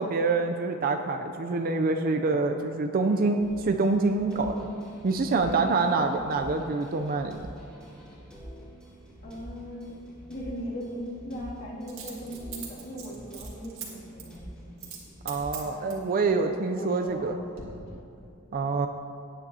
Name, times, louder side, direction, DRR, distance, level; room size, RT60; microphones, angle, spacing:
voice 1, 0.0-4.5 5.0-7.5 15.2-17.4 18.5-18.9, right 3 dB, 45° right, 5 dB, 0.4 m, -26 dB
sound 1, 3.4-15.8, equal, 5° left, 2.1 m, -47 dB
voice 2, 5.4-5.8 9.2-10.0 10.3-14.9 15.5-18.0, equal, 50° left, -6 dB, 2.5 m, -40 dB
Coin (dropping), 9.2-9.4 11.9-13.9 14.2-14.4 14.8-15.0 15.3-16.1 16.7-17.3 17.6-17.7, right 8 dB, 75° right, 1.9 m, -41 dB
17.0 x 9.9 x 2.8 m, 2.6 s
head